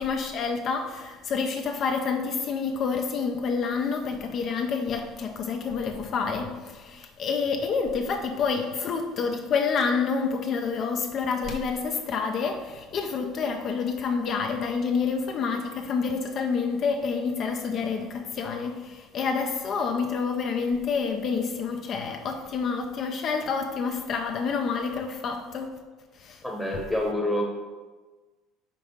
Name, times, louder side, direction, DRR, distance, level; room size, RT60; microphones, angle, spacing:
voice 1, 0.0-25.7 26.1-26.4, left 5 dB, 45° left, 4 dB, 0.5 m, -28 dB
voice 2, 26.4-27.4, left 1 dB, 5° left, -1 dB, 1.0 m, -27 dB
5.2 x 3.8 x 5.3 m, 1.3 s
cardioid pair, 115°, 0 cm